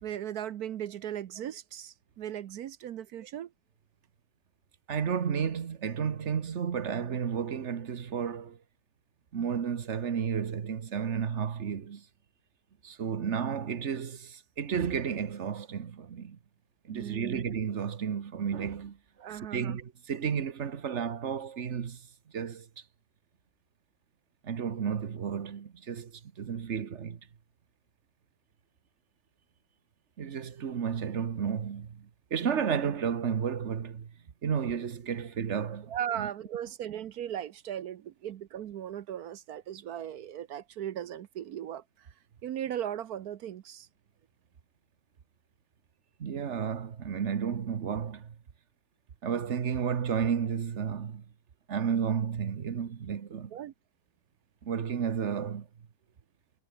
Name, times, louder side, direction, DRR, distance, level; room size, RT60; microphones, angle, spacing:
voice 1, 0.0-3.5 16.9-17.4 19.2-19.8 35.9-42.1 42.4-43.9 53.5-53.7, right 10 dB, 65° right, 1.2 m, -37 dB
voice 2, 4.9-8.6 9.3-12.0 12.8-16.4 16.8-22.1 22.3-22.7 24.4-27.2 30.2-34.1 34.4-36.3 46.2-48.3 49.2-51.2 51.7-53.6 54.6-55.7, right 7 dB, 45° right, 1.4 m, -32 dB
omnidirectional pair, 1.8 m